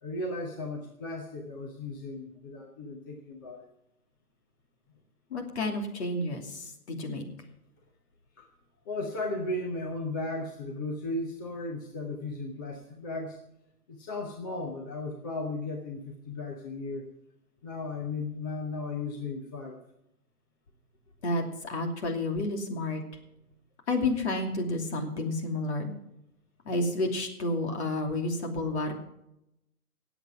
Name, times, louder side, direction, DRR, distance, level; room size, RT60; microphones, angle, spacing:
voice 1, 0.0-3.7 8.4-8.5 8.9-13.4 13.9-17.0 17.6-19.8, left 2 dB, 15° left, 0 dB, 0.8 m, -35 dB
voice 2, 5.3-7.2 21.2-23.0 23.9-25.9 26.6-28.9, left 2 dB, 45° left, 2 dB, 2.9 m, -30 dB
18.0 x 8.0 x 5.9 m, 0.85 s
figure-of-eight pair, 145°, 46 cm